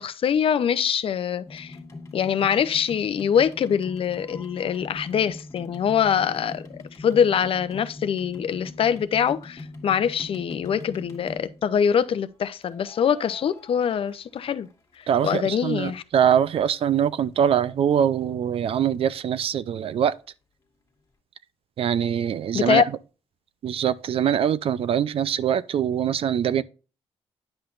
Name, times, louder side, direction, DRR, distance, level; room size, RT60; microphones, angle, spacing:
voice 1, 0.0-1.8 2.1-14.7 15.2-16.0 22.5-22.8, left 8 dB, 55° left, 0.6 m, -24 dB
sound 1, 1.5-11.8 12.6-14.7 15.0-15.9 16.5-16.6 16.8-16.9 17.0-17.1 17.6-17.7 17.9-18.0, left 2 dB, 25° left, 1.9 m, -42 dB
voice 2, 15.1-20.1 21.8-22.8 23.6-26.6, right 9 dB, 60° right, 0.5 m, -23 dB
10.0 x 5.7 x 2.5 m
cardioid pair, 95°, 11 cm